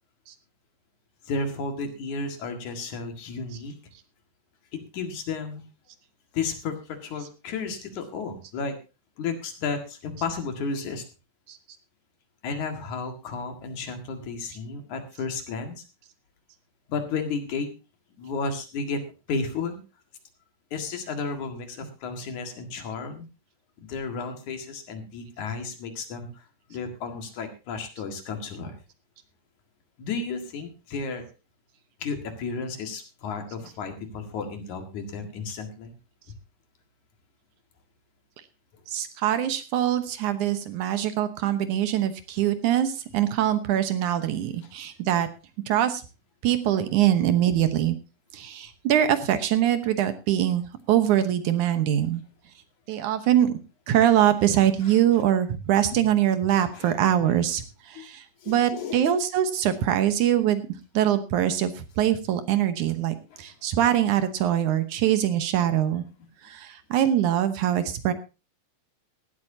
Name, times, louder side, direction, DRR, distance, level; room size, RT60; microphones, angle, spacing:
voice 1, 1.2-3.7 4.7-5.6 6.3-8.8 9.2-11.0 12.4-15.8 16.9-17.7 18.2-19.0 19.3-19.8 20.7-23.3 23.8-26.4 26.7-28.8 30.0-31.2 32.0-35.9 47.4-47.7 54.5-55.0 55.9-56.1 56.7-56.9 57.9-58.1 58.4-59.0 63.3-63.4, left 4 dB, 65° left, 5 dB, 3.3 m, -33 dB
voice 2, 38.9-45.3 45.7-46.0 46.4-48.0 48.3-52.2 52.9-53.6 53.9-60.6 60.9-66.0 66.4-68.1, right 11 dB, 70° right, 10 dB, 2.4 m, -23 dB
17.5 x 12.5 x 2.8 m, 0.29 s
omnidirectional pair, 3.7 m